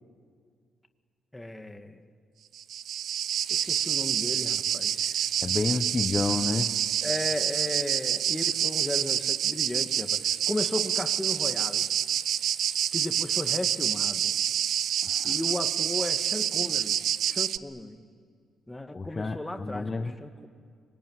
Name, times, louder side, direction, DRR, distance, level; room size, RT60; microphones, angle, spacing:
voice 1, 1.3-2.0 3.5-5.3 7.0-11.9 12.9-14.3 15.2-17.0 17.3-18.0 18.7-20.5, left 1 dB, 10° left, 7 dB, 1.9 m, -35 dB
sound 1, 2.6-17.6, right 10 dB, 70° right, 0.6 m, -27 dB
voice 2, 5.4-6.7 15.0-15.3 18.9-20.1, left 3 dB, 30° left, 7 dB, 1.0 m, -30 dB
26.0 x 24.0 x 9.4 m, 2.1 s
cardioid pair, 90°, 0 cm